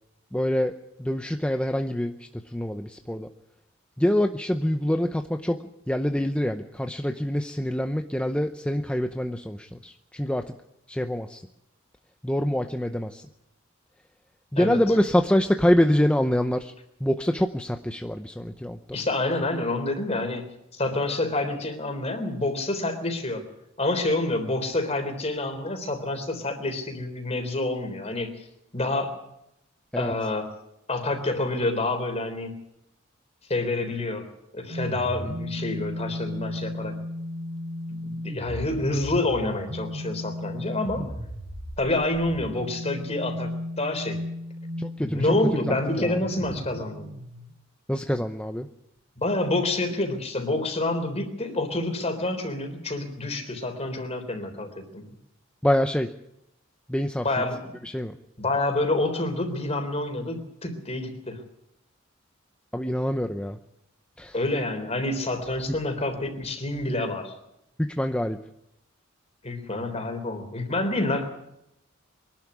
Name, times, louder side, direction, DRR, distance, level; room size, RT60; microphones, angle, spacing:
voice 1, 0.3-0.7 1.0-3.3 4.0-5.6 5.9-10.5 10.9-11.4 12.2-13.2 14.5-16.7 17.0-19.0 29.9-30.1 44.8-46.2 47.9-48.7 55.6-56.1 56.9-57.2 57.8-58.2 62.7-63.6 64.2-64.3 65.7-65.8 67.8-68.4, left 1 dB, 5° left, 6 dB, 0.7 m, -25 dB
voice 2, 18.9-23.5 23.8-28.3 28.7-29.2 30.0-30.5 30.9-32.5 33.5-34.3 34.5-36.9 38.2-41.1 41.8-43.5 43.8-44.2 45.0-47.1 49.2-55.1 57.2-57.6 58.4-61.4 64.3-67.3 69.4-71.2, left 2 dB, 30° left, 6 dB, 3.7 m, -28 dB
sound 1, 34.7-47.5, left 1 dB, 60° right, 5.2 m, -35 dB
23.5 x 12.0 x 9.9 m, 0.83 s
head